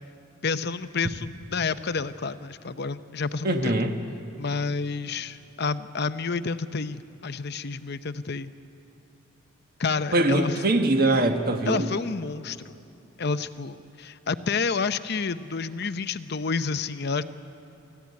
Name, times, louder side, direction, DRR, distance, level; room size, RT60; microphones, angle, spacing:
voice 1, 0.4-3.8 4.4-8.5 9.8-10.6 11.7-12.8 13.2-17.2, left 4 dB, 50° left, 12 dB, 0.7 m, -29 dB
voice 2, 3.4-4.0 10.1-11.9, right 2 dB, 45° right, 5 dB, 1.5 m, -22 dB
28.0 x 15.0 x 9.6 m, 2.8 s
head